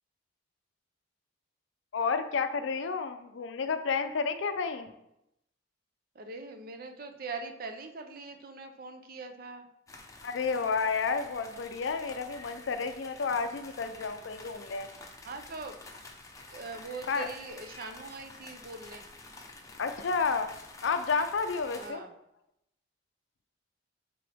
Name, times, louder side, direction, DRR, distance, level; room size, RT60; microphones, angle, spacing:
voice 1, 1.9-4.9 10.2-14.9 17.1-17.3 19.8-20.5 20.8-22.0, left 5 dB, 75° left, 8 dB, 0.5 m, -31 dB
voice 2, 6.1-9.7 15.2-15.8 16.5-19.1 21.8-22.1, right 3 dB, 50° right, 5 dB, 0.6 m, -42 dB
sound 1, 9.9-21.9, left 2 dB, 15° left, 0.7 m, -49 dB
7.7 x 3.8 x 3.5 m, 0.82 s
head